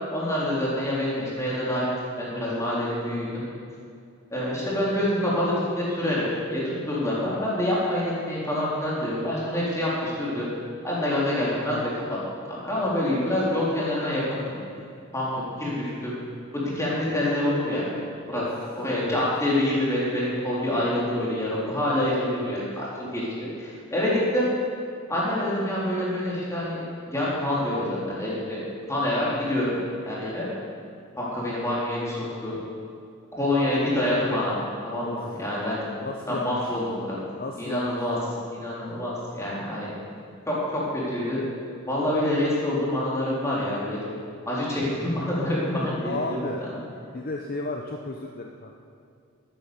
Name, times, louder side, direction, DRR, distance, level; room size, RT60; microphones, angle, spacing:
voice 1, 0.1-1.8 2.2-3.5 4.3-10.5 10.8-12.2 12.5-14.5 15.1-16.2 16.5-17.9 18.3-18.4 18.8-24.5 25.1-28.6 28.9-29.7 30.1-30.5 31.2-32.6 33.3-35.8 36.3-37.2 37.6-38.2 38.5-39.9 40.5-41.4 41.9-44.0 44.5-46.8, left 1 dB, 15° left, -7 dB, 3.8 m, -26 dB
voice 2, 18.3-18.7 19.0-19.3 35.0-35.4 36.0-36.7 37.4-38.0 38.3-38.4 46.0-46.7 47.1-48.8, left 2 dB, 40° left, 2 dB, 0.7 m, -34 dB
13.0 x 10.5 x 7.1 m, 2.3 s
head